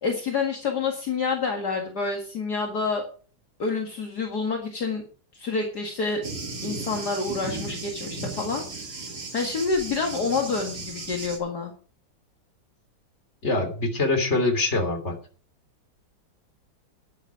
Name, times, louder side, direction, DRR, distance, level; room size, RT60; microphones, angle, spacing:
voice 1, 0.0-3.1 3.6-5.0 5.3-6.2 6.6-8.6 9.3-11.7, left 4 dB, 55° left, 1 dB, 2.5 m, -28 dB
Thunder, 6.2-11.4, right 3 dB, 50° right, 3.1 m, -35 dB
voice 2, 13.4-15.1, left 2 dB, 35° left, 5 dB, 3.6 m, -24 dB
13.0 x 10.5 x 4.9 m, 0.40 s
omnidirectional pair, 2.1 m